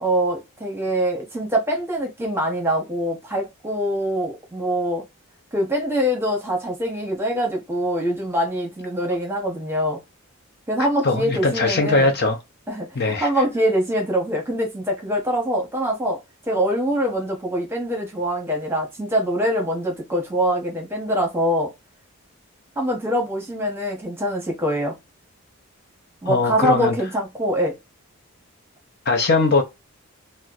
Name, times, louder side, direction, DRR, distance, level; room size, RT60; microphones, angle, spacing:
voice 1, 0.0-5.0 5.5-10.0 10.7-12.1 12.7-16.2 16.5-21.7 22.8-24.9 26.2-27.7, equal, 10° right, 0.9 m, -24 dB
voice 2, 11.0-12.4 12.9-13.3 26.3-26.9 29.1-29.6, left 3 dB, 45° left, 0.6 m, -20 dB
4.2 x 2.1 x 2.4 m
head